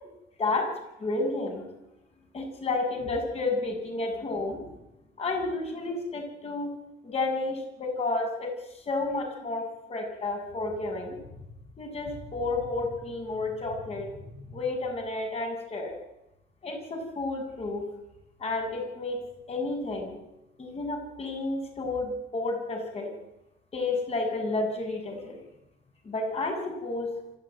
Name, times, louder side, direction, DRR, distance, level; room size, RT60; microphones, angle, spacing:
voice 1, 1.0-1.6 2.3-4.6 5.2-6.7 7.0-8.5 8.9-11.2 11.8-16.0 16.6-17.8 18.4-19.2 19.5-20.2 20.6-23.1 23.7-25.4 26.0-27.1, left 2 dB, 35° left, 2 dB, 7.5 m, -31 dB
26.0 x 14.0 x 9.3 m, 0.90 s
cardioid pair, 110°, 17 cm